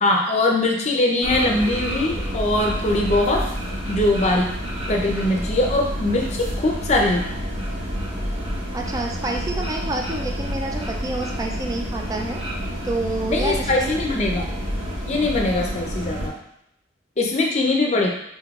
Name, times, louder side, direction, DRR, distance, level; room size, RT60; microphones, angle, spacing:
voice 1, 0.0-3.5 3.9-4.5 4.9-7.3 13.3-14.4 15.1-16.3 17.2-18.1, left 2 dB, 35° left, 1 dB, 0.6 m, -21 dB
sound 1, 1.2-16.3, equal, 80° right, 1.4 m, -29 dB
voice 2, 8.7-12.4 12.8-14.0, right 2 dB, 20° right, 1 dB, 0.3 m, -28 dB
4.0 x 3.7 x 2.3 m, 0.79 s
head